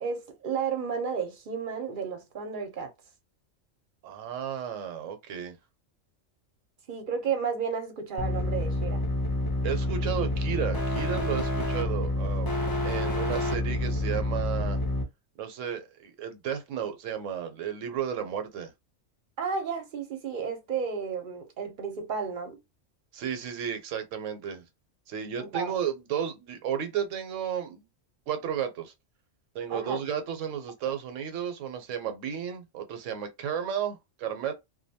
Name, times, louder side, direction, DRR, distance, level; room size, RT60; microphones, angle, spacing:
voice 1, 0.0-2.9 6.9-9.0 19.4-22.6 25.4-25.7 29.7-30.0, right 6 dB, 50° right, 0.7 m, -32 dB
voice 2, 4.0-5.6 9.6-14.8 15.4-18.7 23.1-24.6 25.1-27.8 28.3-28.9 29.5-34.5, right 8 dB, 80° right, 1.0 m, -33 dB
sound 1, 8.2-15.0, left 1 dB, 35° left, 0.3 m, -28 dB
2.5 x 2.2 x 2.7 m
omnidirectional pair, 1.3 m